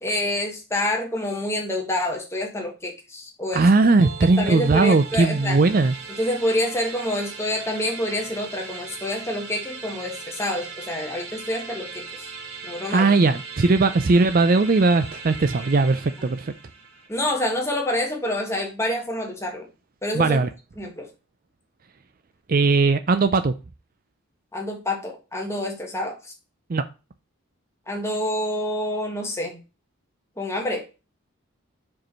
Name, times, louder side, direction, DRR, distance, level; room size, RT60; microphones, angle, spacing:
voice 1, 0.0-3.7 4.4-5.6 6.1-12.2 12.6-13.1 16.2-16.3 17.1-19.7 20.0-20.4 20.8-21.1 24.5-26.3 27.9-29.6 30.4-30.9, left 1 dB, 10° left, 1 dB, 1.6 m, -27 dB
voice 2, 3.5-5.9 12.9-16.5 20.1-20.5 22.5-23.5 26.7-26.8, right 3 dB, 40° right, 11 dB, 0.4 m, -19 dB
sound 1, 4.0-17.1, right 5 dB, 65° right, 2.4 m, -39 dB
5.1 x 4.7 x 5.4 m, 0.30 s
head